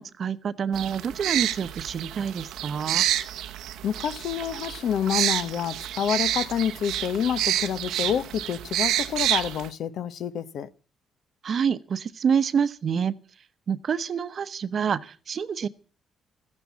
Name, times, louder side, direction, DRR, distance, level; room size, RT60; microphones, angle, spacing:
voice 1, 0.0-3.1 11.4-13.1 13.7-15.7, right 7 dB, 50° right, 0.9 m, -27 dB
sound 1, 0.7-9.7, right 12 dB, 85° right, 0.9 m, -29 dB
voice 2, 3.8-10.7, left 8 dB, 70° left, 0.9 m, -28 dB
14.0 x 9.9 x 8.3 m
cardioid pair, 90°, 0 cm